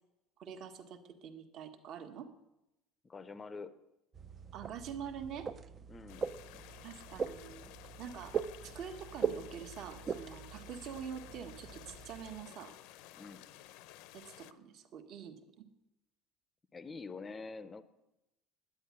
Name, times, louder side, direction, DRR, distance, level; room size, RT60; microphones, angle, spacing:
voice 1, 0.4-2.3 4.5-5.5 6.8-7.7 8.0-12.8 14.1-15.7, right 7 dB, 45° right, 7 dB, 1.4 m, -46 dB
voice 2, 3.0-3.7 5.9-6.3 13.1-13.5 16.7-17.8, left 4 dB, 15° left, 13 dB, 0.7 m, -46 dB
sound 1, 4.1-12.4, right 6 dB, 25° right, 0.5 m, -41 dB
sound 2, 6.1-14.5, left 14 dB, 65° left, 0.7 m, -54 dB
10.5 x 9.4 x 9.7 m, 0.92 s
cardioid pair, 165°, 0 cm